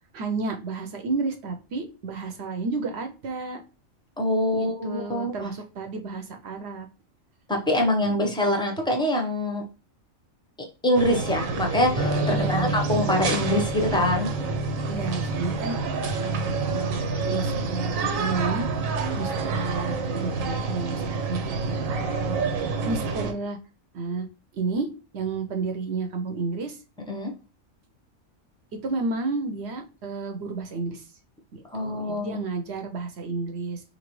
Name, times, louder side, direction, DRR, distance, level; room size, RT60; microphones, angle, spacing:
voice 1, 0.1-3.6 4.5-6.9 8.0-8.3 12.3-12.8 14.8-16.0 16.2-18.7 19.2-21.8 22.2-23.6 23.9-24.3 24.5-24.9 25.1-26.8 28.8-31.0 31.5-33.8, right 3 dB, 60° right, 5 dB, 0.8 m, -31 dB
voice 2, 4.2-5.3 7.5-9.6 10.8-14.3 27.1-27.3 31.7-32.4, left 1 dB, 5° left, 2 dB, 0.4 m, -24 dB
Village activity whistling, 10.9-23.3, right 4 dB, 90° right, 1.1 m, -28 dB
Electric guitar, 12.0-19.8, right 1 dB, 30° right, 0.7 m, -33 dB
4.0 x 2.8 x 3.0 m, 0.32 s
omnidirectional pair, 1.4 m